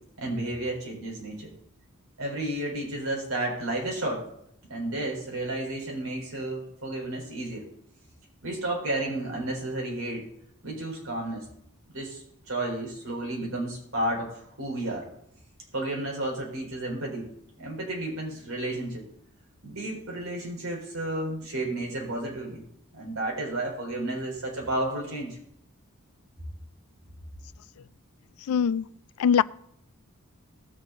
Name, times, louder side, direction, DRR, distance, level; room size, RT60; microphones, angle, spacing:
voice 1, 0.2-1.5 2.2-4.3 4.7-7.7 8.4-10.3 10.6-11.4 11.9-12.2 12.5-15.0 15.7-17.3 17.6-19.1 19.6-22.6 22.9-25.4, right 1 dB, 85° right, 4.2 m, -32 dB
voice 2, 28.4-28.9 29.2-29.4, left 7 dB, 90° left, 0.3 m, -22 dB
19.5 x 7.3 x 3.9 m
head